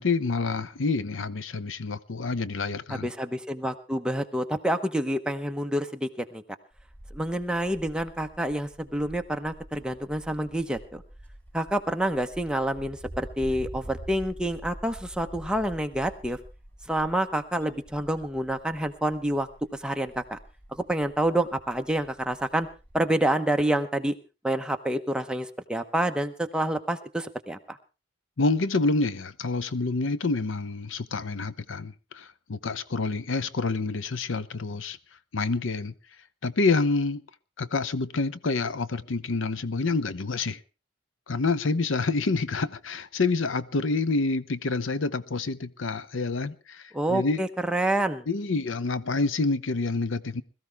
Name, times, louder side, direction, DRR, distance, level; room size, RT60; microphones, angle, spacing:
voice 1, 0.0-3.1 28.4-35.0 35.3-35.9 36.4-37.2 37.6-40.6 41.3-47.4 48.3-50.4, left 3 dB, 70° left, 0.8 m, -27 dB
voice 2, 2.9-6.4 7.1-11.0 11.5-16.4 16.9-20.4 20.7-22.7 22.9-24.1 24.4-27.8 46.9-48.3, right 1 dB, 5° right, 0.9 m, -28 dB
Wind, 6.7-23.0, right 1 dB, 10° left, 5.3 m, -46 dB
21.0 x 14.0 x 3.5 m
head